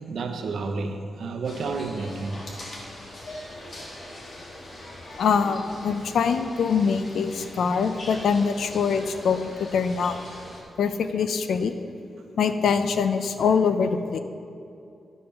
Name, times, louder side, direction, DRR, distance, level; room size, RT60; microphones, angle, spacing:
voice 1, 0.0-2.5 12.2-12.3, right 3 dB, 70° right, 5 dB, 0.8 m, -31 dB
sound 1, 1.4-10.6, left 1 dB, 45° left, 1.6 m, -42 dB
voice 2, 5.2-10.2 10.8-11.7 12.4-14.2, left 6 dB, 80° left, 9 dB, 0.5 m, -23 dB
10.5 x 5.5 x 5.6 m, 2.7 s
wide cardioid pair, 175°, 0 cm